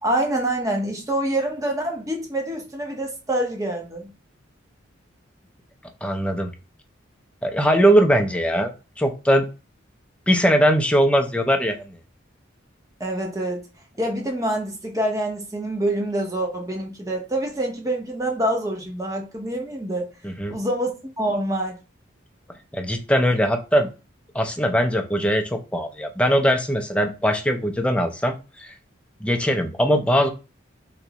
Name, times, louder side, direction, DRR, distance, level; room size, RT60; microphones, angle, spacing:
voice 1, 0.0-4.1 13.0-13.7 14.0-20.1 20.5-21.8, right 1 dB, 15° right, 0.7 m, -26 dB
voice 2, 6.0-6.5 7.4-9.4 10.3-12.0 20.2-20.6 22.7-23.9 24.3-28.7 29.2-30.3, equal, 5° left, 0.4 m, -20 dB
3.4 x 3.0 x 2.8 m
head